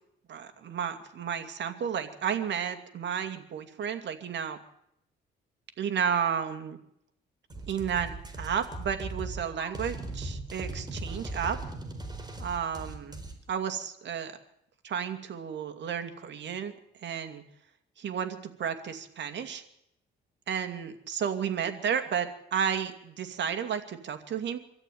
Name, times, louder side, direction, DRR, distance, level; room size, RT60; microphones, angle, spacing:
voice 1, 0.3-4.6 5.8-6.8 7.7-11.6 12.4-13.2 13.5-14.4 14.8-16.7 17.0-17.4 18.0-19.6 20.5-24.6, right 8 dB, 65° right, 8 dB, 2.5 m, -32 dB
sound 1, 7.5-13.3, right 2 dB, 20° right, 4.3 m, -38 dB
24.0 x 13.5 x 9.4 m, 0.79 s
cardioid pair, 90°, 20 cm